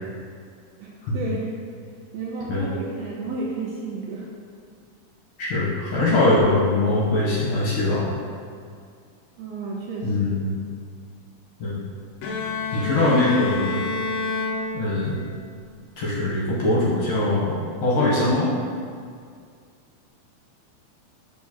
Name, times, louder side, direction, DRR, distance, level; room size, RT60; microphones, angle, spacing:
voice 1, 1.1-1.5 2.1-4.3 9.4-10.3, right 3 dB, 75° right, -3 dB, 1.6 m, -31 dB
voice 2, 5.4-8.2 10.0-10.6 11.6-11.8 12.7-13.8 14.7-15.2 16.0-18.5, left 2 dB, 65° left, -6 dB, 1.7 m, -22 dB
Bowed string instrument, 12.2-15.3, left 3 dB, 85° left, 1.4 m, -29 dB
7.3 x 4.7 x 2.8 m, 2.2 s
omnidirectional pair, 3.5 m